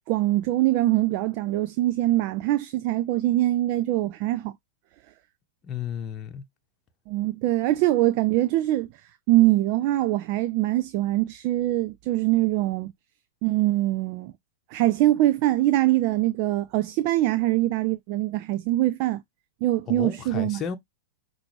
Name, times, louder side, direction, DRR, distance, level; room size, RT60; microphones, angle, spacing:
voice 1, 0.1-4.5 7.1-8.9 9.3-12.9 13.4-14.3 14.7-19.2 19.6-20.6, right 16 dB, 50° right, 0.4 m, -23 dB
voice 2, 5.6-6.4 19.9-20.8, left 8 dB, 30° left, 1.0 m, -33 dB
5.9 x 2.7 x 3.1 m
hypercardioid pair, 100°, 0 cm